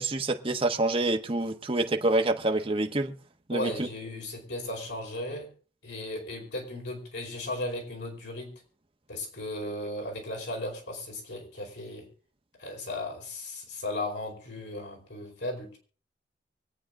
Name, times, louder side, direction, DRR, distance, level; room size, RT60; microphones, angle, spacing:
voice 1, 0.0-3.1 3.5-3.9, right 2 dB, 30° right, 1.2 m, -27 dB
voice 2, 3.5-5.5 5.8-8.6 9.1-12.1 12.6-15.8, left 1 dB, 80° left, 4.8 m, -36 dB
24.0 x 8.9 x 3.7 m
head